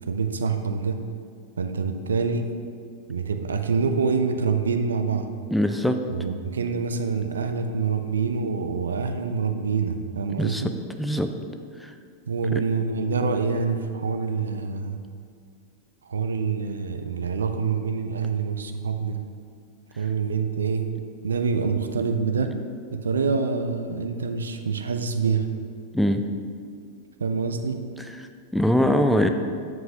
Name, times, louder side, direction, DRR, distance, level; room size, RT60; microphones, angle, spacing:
voice 1, 0.0-1.0 1.6-2.5 3.1-5.3 6.1-10.7 12.3-15.0 16.0-19.2 20.0-20.9 21.2-22.6 22.9-25.5 27.2-27.8, right 5 dB, 70° right, 7 dB, 0.5 m, -26 dB
voice 2, 5.5-6.0 10.4-10.6 11.0-11.3 11.8-11.9 12.5-12.6 25.9-26.3 28.5-29.3, equal, ahead, 6 dB, 0.4 m, -22 dB
7.5 x 7.4 x 2.8 m, 2.2 s
figure-of-eight pair, 90°, 0 cm